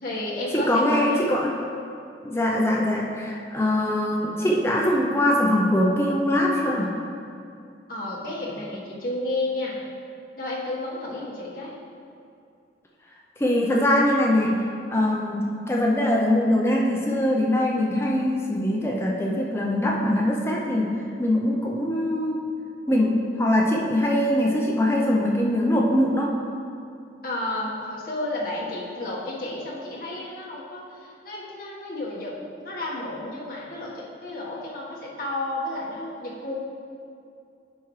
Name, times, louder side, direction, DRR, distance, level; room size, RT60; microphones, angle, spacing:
voice 1, 0.0-1.4 7.9-9.8 10.3-11.7 27.2-36.6, left 2 dB, 50° left, -5 dB, 1.5 m, -32 dB
voice 2, 0.5-1.5 2.2-6.9 13.4-14.5 14.9-20.9 21.2-22.4 22.9-26.3, left 1 dB, 15° left, -2 dB, 0.6 m, -22 dB
9.4 x 5.9 x 3.2 m, 2.5 s
head